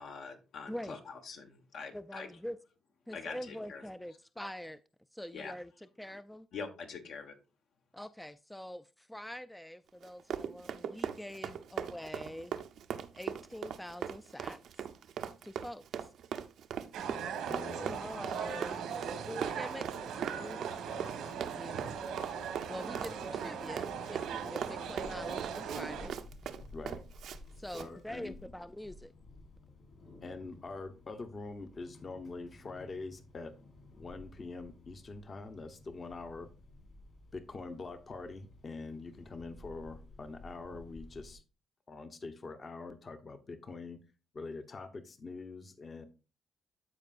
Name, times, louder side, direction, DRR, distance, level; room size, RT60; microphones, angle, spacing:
voice 1, 0.0-2.3 3.1-3.8 5.3-5.5 6.5-7.3, left 5 dB, 70° left, 1.4 m, -44 dB
voice 2, 1.9-2.6 3.1-4.8 5.1-6.5 7.9-12.5 13.1-14.6 15.4-15.8 17.9-20.6 21.6-21.9 22.7-26.2 27.6-29.1, equal, 5° left, 0.3 m, -44 dB
Run, 10.0-27.4 27.7-27.9, right 8 dB, 75° right, 0.6 m, -40 dB
sound 1, 16.9-26.1, right 7 dB, 90° right, 1.4 m, -39 dB
voice 3, 17.5-18.0 26.7-27.0 27.7-28.4 30.2-33.5 33.9-36.5 37.3-41.4 41.9-44.0 44.3-46.1, left 3 dB, 35° left, 0.9 m, -44 dB
sound 2, 21.7-41.4, left 2 dB, 55° left, 3.2 m, -55 dB
13.0 x 4.5 x 2.5 m
cardioid pair, 90°, 0 cm